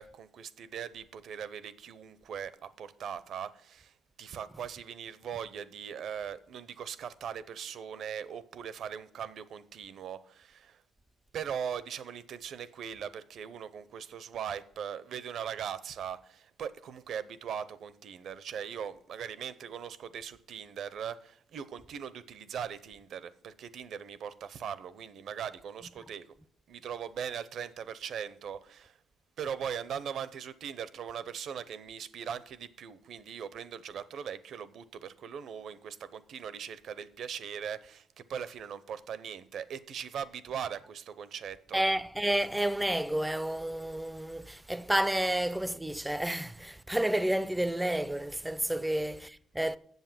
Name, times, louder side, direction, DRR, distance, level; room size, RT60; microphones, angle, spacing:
voice 1, 0.0-3.9 4.2-10.8 11.3-26.3 26.7-29.0 29.4-41.8, right 8 dB, 60° right, 0.7 m, -40 dB
voice 2, 41.7-49.8, right 1 dB, 5° right, 0.4 m, -30 dB
8.1 x 7.2 x 7.4 m
cardioid pair, 110°, 0 cm